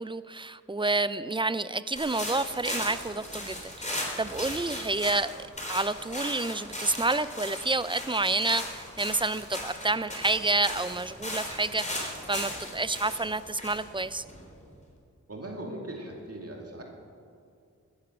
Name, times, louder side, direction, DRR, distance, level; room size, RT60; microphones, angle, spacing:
voice 1, 0.0-14.2, right 2 dB, 15° right, 15 dB, 0.4 m, -29 dB
sound 1, 2.0-14.7, left 1 dB, 25° left, 3.3 m, -37 dB
voice 2, 15.3-16.8, right 1 dB, 55° right, 0 dB, 2.4 m, -39 dB
14.5 x 10.5 x 6.3 m, 2.3 s
wide cardioid pair, 70°, 30 cm